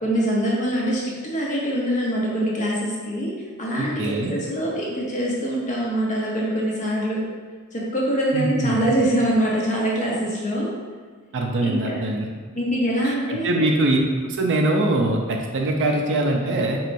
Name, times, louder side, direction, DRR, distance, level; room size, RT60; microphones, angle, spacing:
voice 1, 0.0-3.3 3.6-7.2 7.7-10.7 11.6-12.0 12.6-13.7, right 1 dB, 35° left, -4 dB, 0.8 m, -24 dB
voice 2, 3.8-4.3 8.3-8.8 11.3-12.3 13.0-16.8, right 2 dB, 55° right, 1 dB, 0.5 m, -23 dB
4.6 x 3.1 x 2.6 m, 1.5 s
head